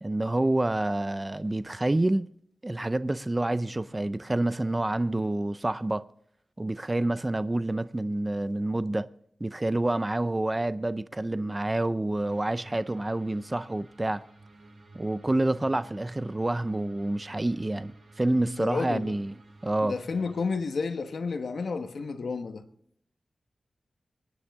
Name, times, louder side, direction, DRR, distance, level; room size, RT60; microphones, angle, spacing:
voice 1, 0.0-2.3 2.6-6.0 6.6-9.1 9.4-14.2 14.9-19.3 19.6-20.0, right 1 dB, 20° right, 0.4 m, -28 dB
sound 1, 12.3-20.5, right 2 dB, 85° right, 6.2 m, -53 dB
voice 2, 18.6-19.1 19.8-22.6, left 4 dB, 85° left, 1.2 m, -31 dB
25.0 x 10.0 x 3.6 m
wide cardioid pair, 130°, 0 cm